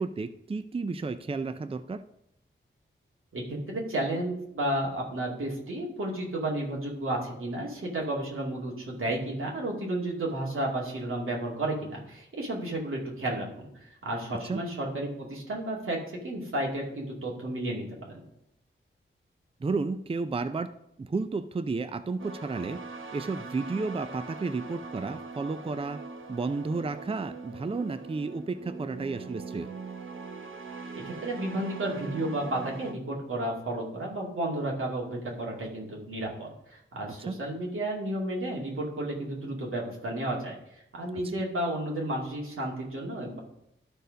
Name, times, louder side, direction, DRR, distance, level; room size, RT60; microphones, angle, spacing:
voice 1, 0.0-2.0 14.5-14.6 19.6-20.7 21.0-22.8 23.1-26.0 26.3-29.7 37.2-37.4, right 3 dB, 25° right, 11 dB, 0.4 m, -32 dB
voice 2, 3.3-13.7 14.0-16.0 16.2-18.2 31.2-43.4, right 1 dB, 90° right, -2 dB, 2.4 m, -32 dB
sound 1, 22.2-32.9, right 4 dB, 70° right, 1.0 m, -41 dB
12.0 x 4.6 x 5.2 m, 0.78 s
wide cardioid pair, 65°, 21 cm